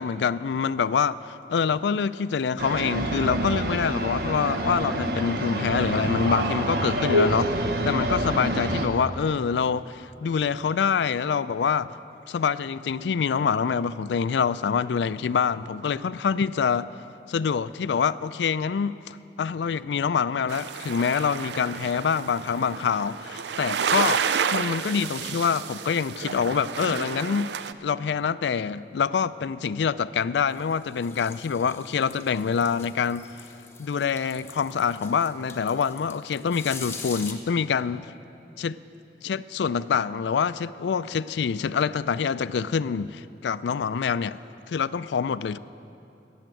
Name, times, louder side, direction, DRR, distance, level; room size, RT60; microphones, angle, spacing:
voice 1, 0.0-12.0 12.3-16.9 17.3-24.2 24.5-27.5 27.8-33.3 33.8-38.1 38.6-38.8 39.2-43.1 43.4-44.4 44.7-45.6, left 6 dB, 85° left, 16 dB, 0.4 m, -26 dB
sound 1, 2.6-8.9, right 1 dB, 65° right, 1.1 m, -26 dB
sound 2, 20.5-27.7, right 7 dB, 80° right, 0.5 m, -30 dB
sound 3, 30.5-37.3, left 4 dB, 15° left, 0.9 m, -43 dB
17.0 x 7.2 x 9.0 m, 2.8 s
head